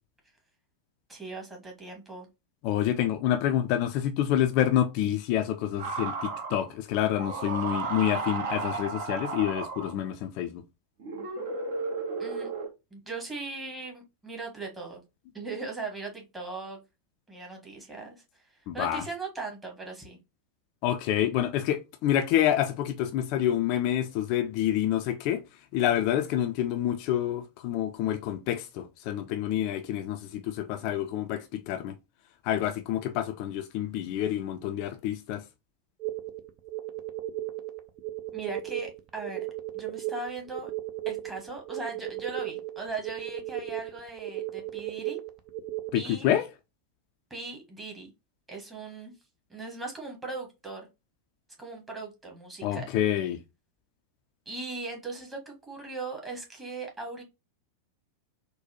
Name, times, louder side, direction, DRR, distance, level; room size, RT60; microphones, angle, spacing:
voice 1, 1.1-2.3 12.2-12.5 12.9-15.0 15.3-16.8 17.3-20.2 38.3-39.5 39.7-40.7 41.0-45.2 45.9-46.3 47.3-48.1 48.5-49.1 49.5-50.9 51.6-52.9 54.4-57.2, right 3 dB, 10° right, 1.3 m, -39 dB
voice 2, 2.6-10.6 18.7-19.0 20.8-25.4 25.7-31.9 32.4-35.4 45.9-46.5 52.6-53.4, left 11 dB, 45° left, 0.4 m, -28 dB
sound 1, 5.8-6.7 7.2-10.1 11.0-12.7, right 4 dB, 50° right, 1.0 m, -33 dB
sound 2, 36.0-46.0, right 15 dB, 35° right, 0.5 m, -36 dB
4.0 x 2.2 x 2.7 m
figure-of-eight pair, 90°, 0 cm